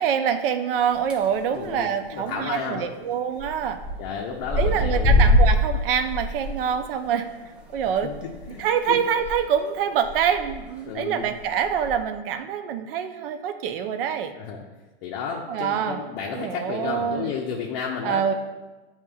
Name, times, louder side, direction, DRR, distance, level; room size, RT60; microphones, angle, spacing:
voice 1, 0.0-3.8 4.6-7.3 7.7-8.1 8.6-14.3 15.5-16.0 16.3-17.3 18.0-18.3, right 8 dB, 60° right, 9 dB, 0.5 m, -25 dB
sound 1, 0.9-1.4 1.7-2.0 2.3-2.4 2.5-2.6 3.4-4.0 4.2-9.3 9.7-9.8 10.0-10.6 11.2-11.9, left 1 dB, 5° right, 0.3 m, -23 dB
voice 2, 1.5-2.9 4.0-5.3 8.0-8.1 8.5-9.0 10.9-11.3 14.4-14.6 15.0-18.3, left 6 dB, 45° left, -1 dB, 0.6 m, -32 dB
8.0 x 2.9 x 2.3 m, 1.2 s
hypercardioid pair, 125°, 32 cm